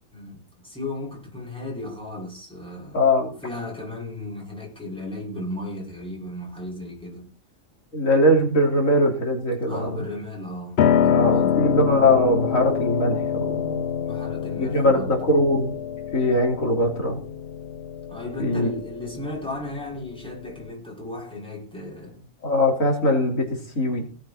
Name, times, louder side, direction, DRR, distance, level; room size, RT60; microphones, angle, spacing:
voice 1, 0.1-3.1 3.4-7.3 9.7-11.6 14.0-15.2 18.1-22.3, left 1 dB, 5° left, 5.9 m, -35 dB
voice 2, 2.9-3.4 7.9-10.0 11.1-13.8 14.6-15.8 16.1-17.2 18.4-18.8 22.4-24.1, left 1 dB, 85° left, 3.5 m, -21 dB
Piano, 10.8-20.7, left 8 dB, 55° left, 0.9 m, -26 dB
17.5 x 7.9 x 4.3 m
omnidirectional pair, 1.4 m